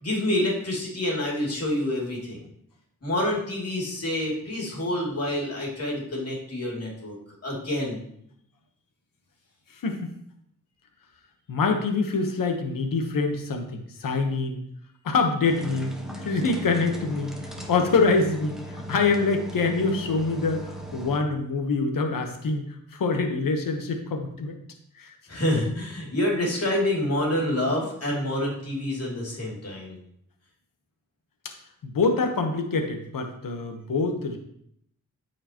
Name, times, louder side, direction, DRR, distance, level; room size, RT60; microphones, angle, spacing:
voice 1, 0.0-2.4 3.0-7.1 7.4-8.1 25.3-30.0, left 1 dB, 45° left, -2 dB, 2.9 m, -27 dB
voice 2, 9.7-10.1 11.5-14.6 15.0-22.6 22.9-24.6 24.9-25.1 31.8-34.4, left 4 dB, 80° left, 4 dB, 1.2 m, -25 dB
sound 1, 15.4-21.2, equal, ahead, 1.3 m, -38 dB
13.5 x 4.9 x 3.0 m, 0.70 s
wide cardioid pair, 95°, 33 cm